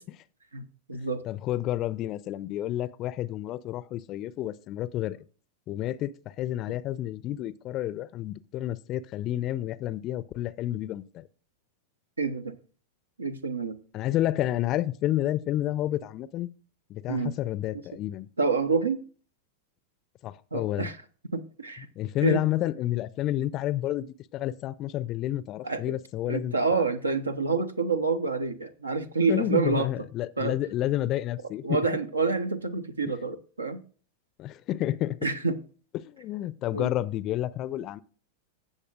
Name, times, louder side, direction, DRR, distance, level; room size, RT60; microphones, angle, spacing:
voice 1, 0.5-1.2 12.2-12.5 13.2-13.8 17.1-17.3 18.4-19.0 20.5-21.0 21.3-21.9 22.2-22.4 25.6-25.9 26.3-29.9 30.4-30.5 31.6-33.8 35.2-35.6 36.7-36.9, right 4 dB, 80° right, 0.8 m, -28 dB
voice 2, 1.2-5.2 5.7-11.2 13.9-16.5 16.9-18.3 20.2-20.9 22.0-26.9 29.3-31.8 33.1-33.2 34.4-35.2 35.9-38.0, left 13 dB, 35° left, 0.4 m, -30 dB
16.0 x 6.6 x 2.4 m
figure-of-eight pair, 90°, 0 cm